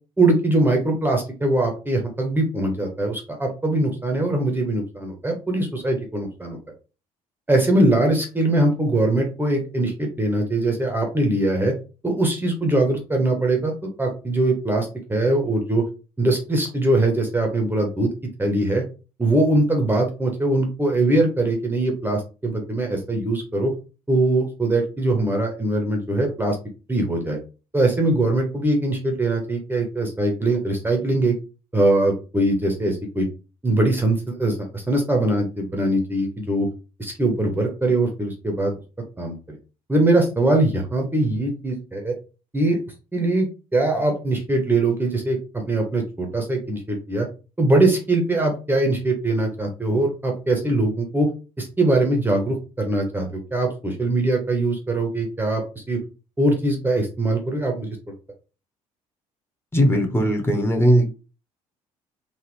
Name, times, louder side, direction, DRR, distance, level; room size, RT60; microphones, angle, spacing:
voice 1, 0.2-6.6 7.5-11.7 12.0-13.7 14.0-15.8 16.2-18.1 18.4-18.8 19.2-23.7 24.1-26.6 26.9-27.4 27.7-31.4 31.7-33.3 33.6-36.7 37.0-38.7 39.2-39.6 39.9-42.1 42.5-42.8 43.1-47.3 47.6-51.3 51.6-56.0 56.4-58.1, right 2 dB, 10° right, 2 dB, 1.1 m, -22 dB
voice 2, 59.7-61.1, equal, 15° left, 3 dB, 1.3 m, -18 dB
3.9 x 2.5 x 3.1 m, 0.33 s
figure-of-eight pair, 50°, 18 cm